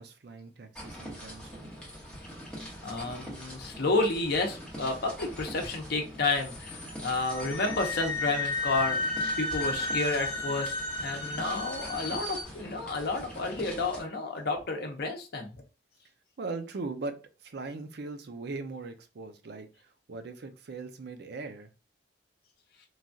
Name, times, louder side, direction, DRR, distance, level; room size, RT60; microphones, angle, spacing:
voice 1, 0.0-1.7 16.4-17.2 17.4-19.7 20.1-21.7, right 3 dB, 65° right, 0.5 m, -39 dB
sound 1, 0.7-14.0, equal, 5° left, 1.0 m, -44 dB
voice 2, 2.8-9.0 9.4-10.8 11.0-15.5, left 3 dB, 60° left, 0.7 m, -31 dB
sound 2, 6.4-12.4, left 2 dB, 30° left, 1.0 m, -33 dB
3.1 x 2.3 x 2.6 m
head